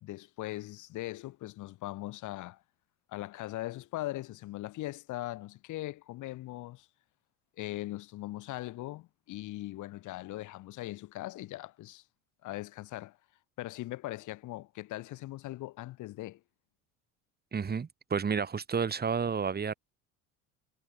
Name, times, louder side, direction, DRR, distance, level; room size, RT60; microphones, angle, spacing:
voice 1, 0.0-2.6 3.1-6.9 7.6-12.0 12.4-13.2 13.6-16.4, left 17 dB, 45° left, 0.8 m, -40 dB
voice 2, 17.5-19.7, right 6 dB, 25° right, 1.5 m, -31 dB
hypercardioid pair, 75°, 41 cm